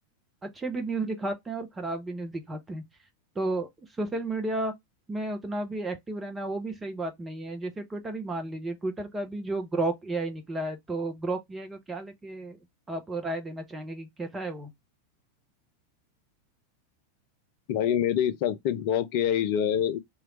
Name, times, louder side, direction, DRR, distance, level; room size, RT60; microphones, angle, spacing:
voice 1, 0.4-2.8 3.4-3.7 4.0-4.7 5.1-12.6 12.9-14.7, right 2 dB, 15° right, 0.7 m, -32 dB
voice 2, 17.7-20.0, left 9 dB, 45° left, 0.5 m, -26 dB
3.0 x 2.4 x 3.0 m
figure-of-eight pair, 90°, 0 cm